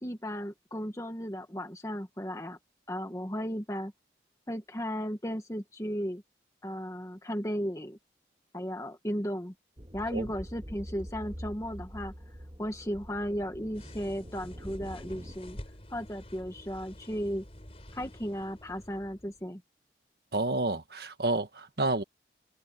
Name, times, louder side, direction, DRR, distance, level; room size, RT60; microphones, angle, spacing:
voice 1, 0.0-2.6 2.9-3.9 4.5-6.2 6.6-8.0 8.5-9.5 9.9-12.1 12.6-15.6 15.9-17.4 17.9-19.6, equal, 20° left, 1.5 m, -35 dB
sound 1, 9.8-15.4, equal, 30° right, 2.1 m, -45 dB
sound 2, 13.7-19.5, left 1 dB, 35° left, 4.9 m, -49 dB
voice 2, 20.3-22.0, right 2 dB, 65° right, 1.5 m, -29 dB
open air
head